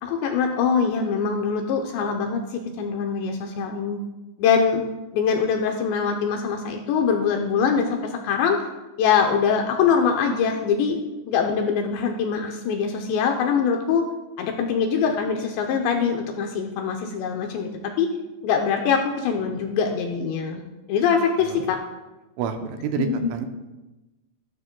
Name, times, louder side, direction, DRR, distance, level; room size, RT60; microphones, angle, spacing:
voice 1, 0.0-4.0 4.4-4.8 5.1-8.6 9.0-11.0 11.3-14.0 14.4-18.1 18.4-20.6 20.9-21.8 23.0-23.3, left 6 dB, 80° left, 3 dB, 2.7 m, -23 dB
voice 2, 22.4-23.5, right 7 dB, 85° right, 6 dB, 3.1 m, -28 dB
14.5 x 12.5 x 2.2 m, 1.1 s
omnidirectional pair, 5.6 m